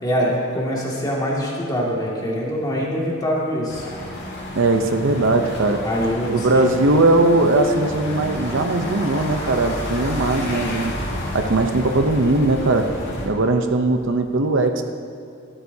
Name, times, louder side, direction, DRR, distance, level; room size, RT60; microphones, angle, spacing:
voice 1, 0.0-3.9 5.8-6.8, equal, 20° left, -4 dB, 2.2 m, -24 dB
sound 1, 3.7-13.3, equal, 55° left, 2.0 m, -30 dB
voice 2, 4.5-5.8 6.3-10.9 11.3-12.9 13.2-14.8, right 2 dB, 60° right, 6 dB, 0.7 m, -19 dB
14.0 x 12.5 x 2.8 m, 2.6 s
head